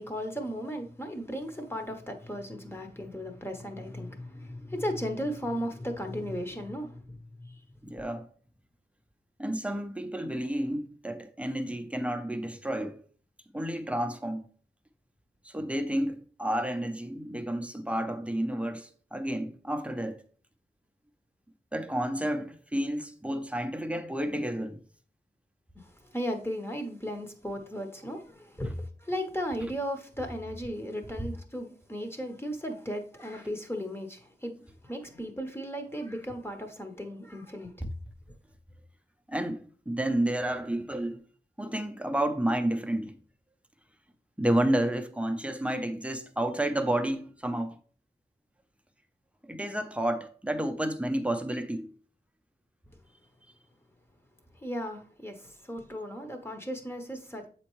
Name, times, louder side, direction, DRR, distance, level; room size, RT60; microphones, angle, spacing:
voice 1, 0.0-7.6 8.0-8.1 25.7-34.5 34.8-37.7 54.6-57.5, equal, 15° left, 1.0 m, -36 dB
voice 2, 7.8-8.3 9.4-13.0 13.5-14.4 15.4-20.2 21.7-24.8 37.8-37.9 39.3-41.2 41.6-43.2 44.4-47.8 49.4-51.9, right 1 dB, 5° right, 0.6 m, -30 dB
7.5 x 4.4 x 3.1 m
wide cardioid pair, 80°, 18 cm